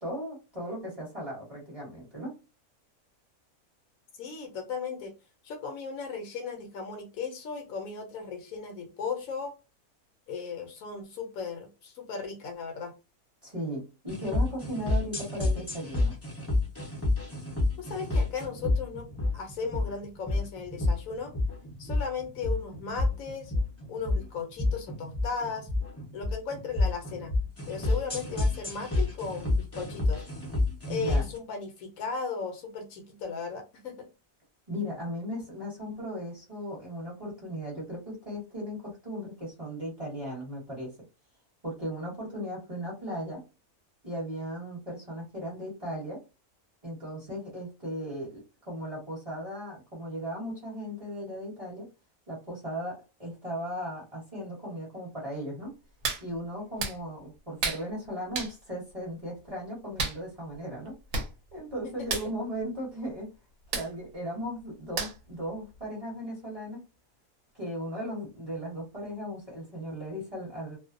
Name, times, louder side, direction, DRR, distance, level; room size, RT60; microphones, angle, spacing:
voice 1, 0.0-2.3 13.4-16.2 30.9-31.2 34.7-40.9 41.6-43.4 44.0-46.2 46.8-48.3 48.6-51.8 52.3-55.7 56.2-60.9 61.5-63.3 63.7-66.8 67.5-70.8, equal, 30° right, -5 dB, 0.9 m, -37 dB
voice 2, 4.2-5.1 5.4-9.5 10.3-12.9 17.8-19.1 19.3-21.3 21.8-23.5 23.9-25.7 26.1-27.3 27.7-30.2 30.9-34.1 61.8-62.2, left 5 dB, 75° left, 4 dB, 1.0 m, -36 dB
sound 1, 14.1-31.4, left 2 dB, 15° left, 0.5 m, -29 dB
Hands, 56.0-56.2 56.8-57.0 57.6-57.8 58.3-58.5 60.0-60.2 60.9-61.0 61.1-61.3 61.6-61.7 62.0-62.3 63.7-63.9 65.0-65.3 65.8-65.9, right 4 dB, 65° right, 0.9 m, -31 dB
2.5 x 2.1 x 2.4 m, 0.30 s
omnidirectional pair, 1.6 m